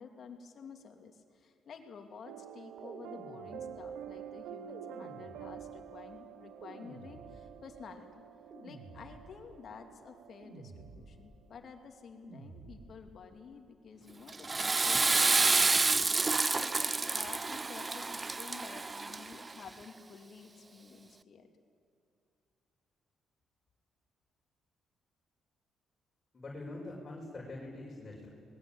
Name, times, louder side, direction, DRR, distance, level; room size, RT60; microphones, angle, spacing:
voice 1, 0.0-8.2 8.6-21.5, left 5 dB, 55° left, 4 dB, 2.9 m, -51 dB
sound 1, 2.2-11.6, right 8 dB, 90° right, 0.8 m, -48 dB
sound 2, 2.8-4.0 4.7-5.9 6.6-7.7 8.5-9.5 10.4-11.4 12.2-13.1, right 3 dB, 70° right, 4.0 m, -52 dB
Water / Toilet flush, 14.3-19.5, right 3 dB, 25° right, 0.5 m, -29 dB
voice 2, 26.3-28.3, left 2 dB, 35° left, -4 dB, 5.6 m, -44 dB
26.5 x 20.5 x 8.9 m, 2.5 s
cardioid pair, 90°, 0 cm